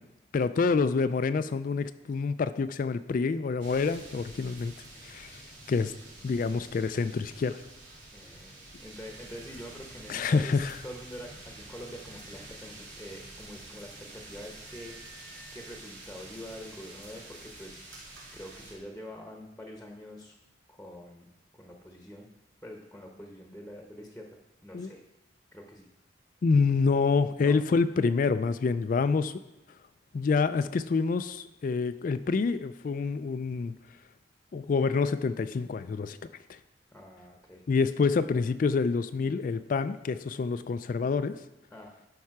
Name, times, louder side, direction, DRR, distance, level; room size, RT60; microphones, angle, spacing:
voice 1, 0.3-4.7 5.0-5.4 5.7-5.9 6.2-7.6 10.1-10.8 24.7-24.9 26.4-29.3 30.1-33.7 34.5-36.2 37.7-41.4, left 4 dB, 45° left, 12 dB, 0.3 m, -27 dB
sound 1, 3.6-18.7, right 2 dB, 85° right, 2.7 m, -48 dB
voice 2, 8.1-17.8 18.3-20.4 20.7-21.3 21.6-22.3 22.6-25.0 25.5-25.9 27.4-27.6 36.9-37.6 41.7-41.9, equal, 5° left, 2 dB, 0.9 m, -45 dB
Wind instrument woodwind instrument, 12.1-15.6, right 2 dB, 65° right, 3.3 m, -58 dB
11.5 x 5.6 x 4.8 m, 0.93 s
head